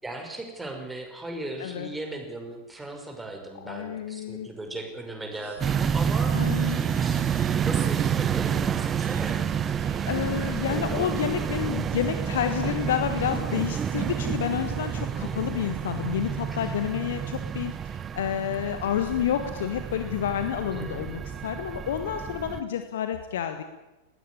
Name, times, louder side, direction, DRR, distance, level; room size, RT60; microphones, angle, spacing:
voice 1, 0.0-6.3 6.6-7.2 7.6-9.4 15.1-15.6 16.6-16.8 20.7-21.2, right 2 dB, 10° right, 3 dB, 5.5 m, -38 dB
voice 2, 3.6-4.5 6.3-6.8 10.0-23.6, left 9 dB, 60° left, 8 dB, 1.6 m, -29 dB
sound 1, 5.3-17.8, right 10 dB, 55° right, 2.2 m, -50 dB
sound 2, 5.3-11.1, right 3 dB, 75° right, 5.7 m, -55 dB
sound 3, 5.6-22.6, right 8 dB, 25° right, 1.0 m, -29 dB
20.5 x 16.0 x 9.9 m, 1.1 s
figure-of-eight pair, 90°, 0 cm